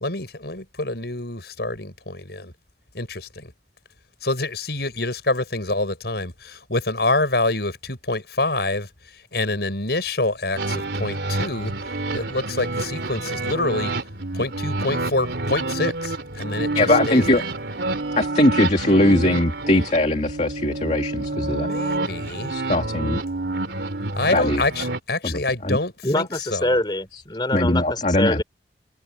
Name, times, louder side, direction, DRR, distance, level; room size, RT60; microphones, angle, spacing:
voice 1, 0.0-2.5 2.9-3.5 4.2-8.9 9.3-11.7 12.1-13.9 14.3-17.5 21.3-22.5 24.1-26.8, left 2 dB, 65° left, 7.5 m, -26 dB
sound 1, 10.6-25.0, right 2 dB, 75° right, 3.1 m, -28 dB
voice 2, 16.7-17.4 18.2-21.7 22.5-23.2 24.3-24.6 25.2-25.8 27.5-28.4, left 1 dB, 40° left, 2.4 m, -20 dB
voice 3, 26.0-28.4, left 1 dB, 25° left, 4.8 m, -24 dB
head